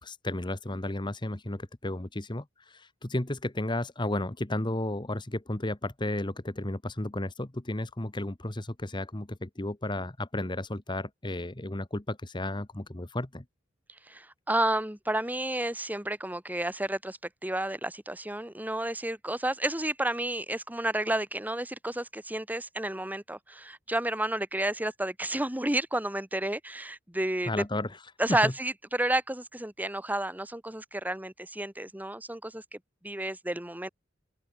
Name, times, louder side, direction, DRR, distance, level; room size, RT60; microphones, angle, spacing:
voice 1, 0.0-13.4 27.5-28.0 28.3-28.5, left 1 dB, 20° left, 1.3 m, -33 dB
voice 2, 14.1-27.5 28.2-32.8 33.0-33.9, right 1 dB, 10° right, 1.7 m, -31 dB
open air
head